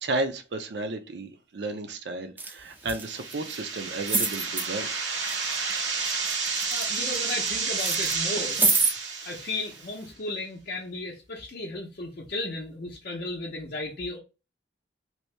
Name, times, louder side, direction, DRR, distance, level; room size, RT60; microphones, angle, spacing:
voice 1, 0.0-4.9, right 2 dB, 70° right, 0.5 m, -33 dB
sound 1, 2.4-2.5 2.8-3.6 4.1-4.7 5.3-5.8 6.1-7.5 7.8-8.9 9.7-9.8, right 3 dB, 10° right, 0.4 m, -27 dB
sound 2, 2.9-9.9, right 5 dB, 90° right, 1.0 m, -30 dB
voice 2, 6.5-8.6 9.2-14.2, left 2 dB, 55° left, 0.6 m, -35 dB
2.8 x 2.7 x 3.2 m
head